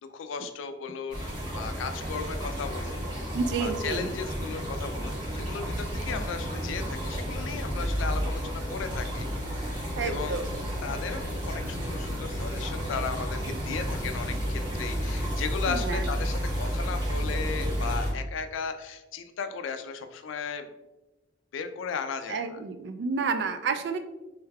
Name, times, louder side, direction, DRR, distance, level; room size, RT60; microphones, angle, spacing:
voice 1, 0.0-10.5 10.8-20.7 21.5-22.6, left 6 dB, 85° left, 8 dB, 0.3 m, -36 dB
sound 1, 1.1-18.1, equal, 25° right, 1.0 m, -31 dB
voice 2, 3.3-4.1 10.0-10.5 15.7-16.0 22.3-24.0, right 4 dB, 65° right, 9 dB, 0.3 m, -30 dB
3.3 x 3.2 x 2.2 m, 1.0 s
head